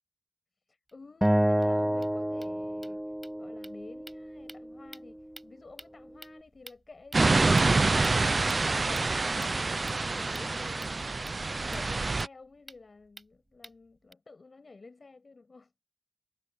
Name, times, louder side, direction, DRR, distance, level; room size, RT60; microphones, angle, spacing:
voice 1, 0.7-11.0 11.5-15.7, left 3 dB, 80° left, 7.0 m, -51 dB
sound 1, 0.9-1.0 1.2-1.3 1.6-1.7 1.9-14.1, right 2 dB, 35° right, 5.8 m, -52 dB
Acoustic guitar, 1.2-4.5, right 1 dB, 10° right, 1.6 m, -29 dB
sound 2, 7.1-12.3, right 3 dB, 65° right, 0.6 m, -26 dB
wide cardioid pair, 75°, 0 cm